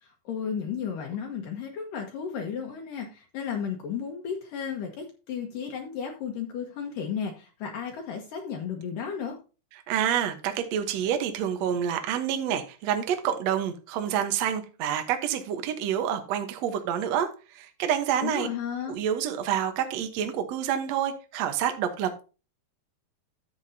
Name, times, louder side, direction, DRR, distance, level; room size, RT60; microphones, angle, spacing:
voice 1, 0.0-9.4 18.2-18.9, left 7 dB, 70° left, 2.5 m, -34 dB
voice 2, 9.9-18.5 18.9-22.2, right 9 dB, 70° right, 1.6 m, -28 dB
11.5 x 8.0 x 2.7 m
omnidirectional pair, 4.4 m